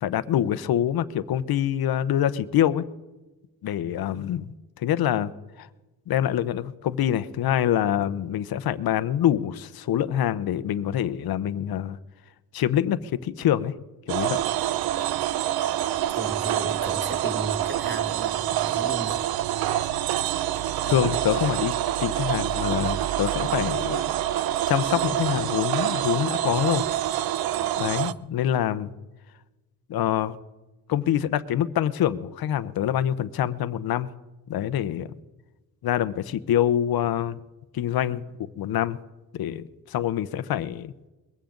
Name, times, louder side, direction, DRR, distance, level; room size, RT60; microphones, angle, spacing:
voice 1, 0.0-2.9 3.6-5.3 5.6-5.7 6.1-12.0 12.5-13.7 14.1-14.4 20.9-21.7 22.0-24.1 24.7-26.9 27.8-28.9 29.9-30.4 30.9-34.1 34.5-35.1 35.8-37.4 37.7-38.2 38.6-39.0 39.3-40.9, left 11 dB, 70° left, 14 dB, 0.9 m, -25 dB
sound 1, 14.1-28.1, right 12 dB, 75° right, 0.7 m, -26 dB
voice 2, 16.1-19.2 28.0-28.2, right 2 dB, 30° right, 6 dB, 2.0 m, -35 dB
21.5 x 16.0 x 3.9 m, 1.1 s
cardioid pair, 85°, 37 cm